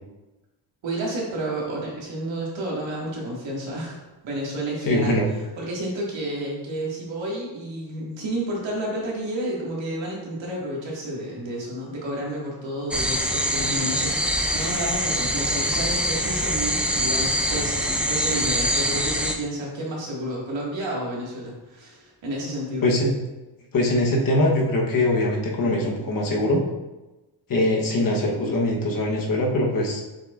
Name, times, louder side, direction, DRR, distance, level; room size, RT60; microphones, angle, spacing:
voice 1, 0.8-5.2 5.6-22.9, right 1 dB, 70° right, -3 dB, 2.0 m, -31 dB
voice 2, 4.9-5.2 22.8-23.1 23.7-26.6 27.5-30.0, left 1 dB, 45° left, -1 dB, 1.2 m, -22 dB
sound 1, 12.9-19.3, equal, 5° right, 0.3 m, -24 dB
6.9 x 5.9 x 2.5 m, 1.1 s
wide cardioid pair, 165°, 46 cm